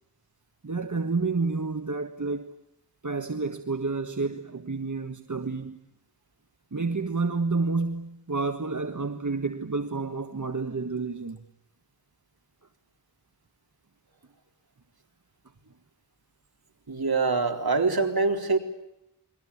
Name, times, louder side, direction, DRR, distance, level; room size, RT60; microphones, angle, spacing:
voice 1, 0.6-2.6 3.0-5.8 6.7-11.4, right 4 dB, 45° right, 1.6 m, -29 dB
voice 2, 16.9-18.6, right 3 dB, 60° right, 4.1 m, -24 dB
29.5 x 22.5 x 8.6 m
wide cardioid pair, 60°, 41 cm